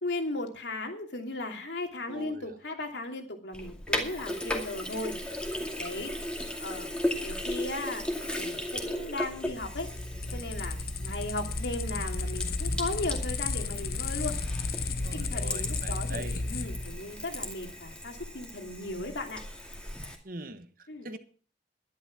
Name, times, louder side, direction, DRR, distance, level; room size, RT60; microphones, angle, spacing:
voice 1, 0.0-5.2 5.8-6.2 6.6-6.9 7.2-8.1 8.3-9.9 10.3-14.4 15.1-19.4 20.9-21.1, left 2 dB, 80° left, 4 dB, 2.8 m, -36 dB
voice 2, 2.1-2.5 15.0-16.4 20.2-21.2, right 2 dB, 50° right, 10 dB, 1.3 m, -43 dB
Sink (filling or washing), 3.5-20.2, left 1 dB, 5° left, 2.3 m, -37 dB
sound 1, 9.3-16.9, left 3 dB, 55° left, 1.0 m, -33 dB
12.0 x 11.5 x 6.2 m, 0.40 s
head